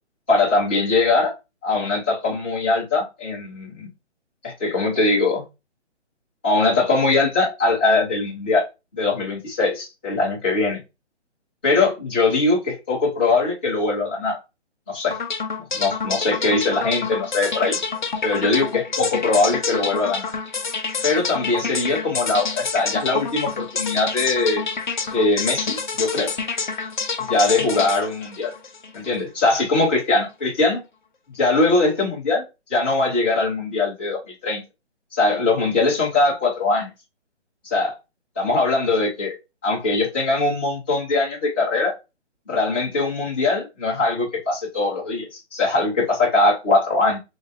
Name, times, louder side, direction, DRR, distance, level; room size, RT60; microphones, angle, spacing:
voice 1, 0.3-1.3 1.6-3.9 4.4-5.4 6.4-8.7 8.9-10.8 11.6-14.4 14.9-15.2 15.7-17.8 18.2-20.3 21.0-24.6 25.1-26.3 27.2-28.5 28.9-30.8 31.4-32.4 32.7-34.6 35.1-36.9 37.6-37.9 38.4-39.3 39.6-41.9 42.5-47.2, left 3 dB, 10° left, 0.7 m, -21 dB
sound 1, 15.1-29.2, left 5 dB, 45° left, 0.5 m, -28 dB
3.2 x 3.1 x 2.6 m
hypercardioid pair, 170°, 35 cm